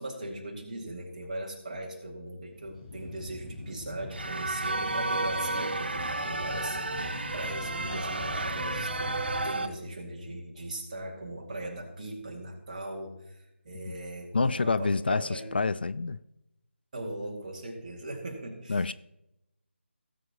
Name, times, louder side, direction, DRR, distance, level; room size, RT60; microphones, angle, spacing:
voice 1, 0.0-9.2 9.4-15.5 16.9-18.9, right 1 dB, 35° right, 0 dB, 2.2 m, -39 dB
sound 1, 2.4-9.5, left 2 dB, 30° left, 4.4 m, -41 dB
sound 2, 4.1-9.7, right 2 dB, 55° right, 1.0 m, -32 dB
voice 2, 14.3-16.2 18.7-18.9, left 4 dB, 50° left, 16 dB, 0.3 m, -27 dB
18.0 x 7.7 x 3.0 m, 0.88 s
figure-of-eight pair, 155°, 7 cm